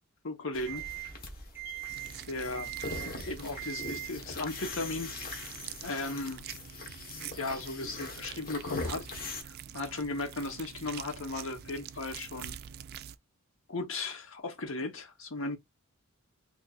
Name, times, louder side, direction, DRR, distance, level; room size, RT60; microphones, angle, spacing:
voice 1, 0.2-0.8 2.3-2.7 3.2-5.1 5.8-6.5 7.4-9.1 9.4-12.5 13.7-15.6, left 2 dB, 65° left, 1.1 m, -36 dB
sound 1, 0.5-9.4, left 3 dB, 45° left, 1.2 m, -42 dB
sound 2, 0.7-6.7, right 15 dB, 10° right, 1.0 m, -44 dB
sound 3, 1.9-13.2, right 9 dB, 50° right, 0.3 m, -46 dB
4.1 x 2.9 x 2.4 m
head